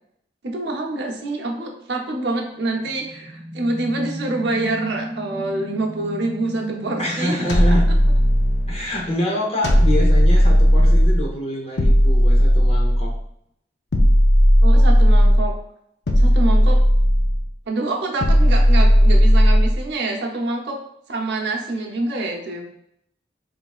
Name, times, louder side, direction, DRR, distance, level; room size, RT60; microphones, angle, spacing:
voice 1, 0.4-7.4 14.6-15.5 16.2-16.8 17.7-20.8 21.1-22.6, right 2 dB, 75° right, 1 dB, 0.8 m, -26 dB
sound 1, 2.6-9.1, right 1 dB, 20° right, 0.5 m, -34 dB
voice 2, 7.0-7.8 8.7-13.1, equal, 35° left, -1 dB, 0.7 m, -26 dB
sound 2, 7.5-8.8 9.6-11.3 11.8-13.2 13.9-15.5 16.1-17.5 18.2-19.8, equal, 70° left, 0.6 m, -14 dB
3.8 x 3.4 x 2.4 m, 0.73 s
head